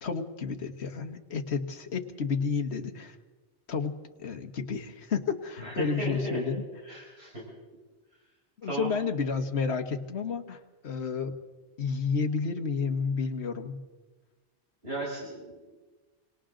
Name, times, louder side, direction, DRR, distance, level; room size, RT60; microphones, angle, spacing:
voice 1, 0.0-3.2 3.7-6.6 8.6-10.6 10.8-11.3 11.8-13.8, left 5 dB, 75° left, 6 dB, 1.5 m, -31 dB
voice 2, 5.6-6.4 6.8-7.4 8.6-8.9 14.8-15.6, right 1 dB, 65° right, -5 dB, 5.8 m, -35 dB
28.0 x 25.0 x 3.8 m, 1.3 s
omnidirectional pair, 1.1 m